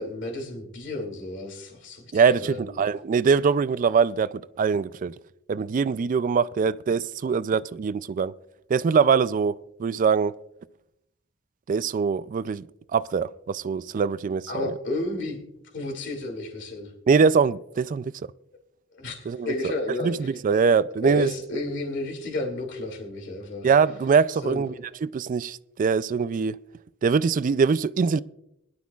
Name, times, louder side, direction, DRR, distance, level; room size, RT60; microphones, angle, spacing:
voice 1, 0.0-2.8 14.5-15.4 15.7-16.9 18.9-20.1 20.6-20.7 21.0-23.7 24.4-24.6, left 2 dB, 60° left, 2.5 m, -32 dB
voice 2, 2.1-5.1 5.5-8.3 8.7-9.5 9.8-10.3 11.7-12.6 12.9-14.7 17.1-18.1 19.3-19.5 20.0-21.3 23.6-24.7 25.0-26.6 27.0-28.2, right 5 dB, 40° right, 0.3 m, -23 dB
21.0 x 11.5 x 2.4 m
head